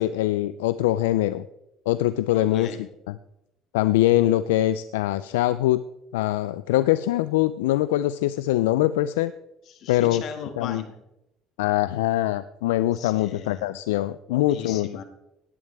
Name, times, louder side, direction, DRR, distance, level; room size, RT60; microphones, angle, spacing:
voice 1, 0.0-1.4 1.9-2.7 3.1-3.2 3.7-5.8 6.1-9.3 9.9-10.2 10.6-10.8 11.6-14.9, left 15 dB, 85° left, 15 dB, 0.4 m, -23 dB
voice 2, 2.3-2.9 9.7-11.0 12.9-13.7 14.3-15.0, left 7 dB, 60° left, 7 dB, 2.0 m, -38 dB
17.5 x 10.5 x 3.5 m, 0.88 s
hypercardioid pair, 70°, 0 cm